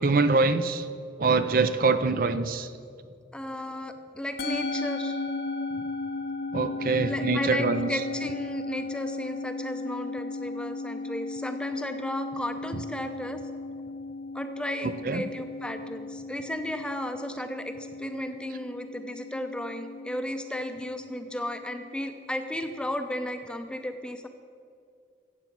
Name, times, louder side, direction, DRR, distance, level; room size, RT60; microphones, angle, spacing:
voice 1, 0.0-0.8 1.2-2.7 6.5-7.9 14.8-15.2, right 3 dB, 50° right, 11 dB, 0.5 m, -24 dB
voice 2, 3.3-5.2 5.7-5.8 7.1-13.4 14.3-24.3, left 1 dB, 5° left, 7 dB, 0.6 m, -34 dB
Musical instrument, 4.4-22.9, left 2 dB, 60° left, 0.8 m, -36 dB
15.0 x 8.2 x 6.0 m, 2.4 s
head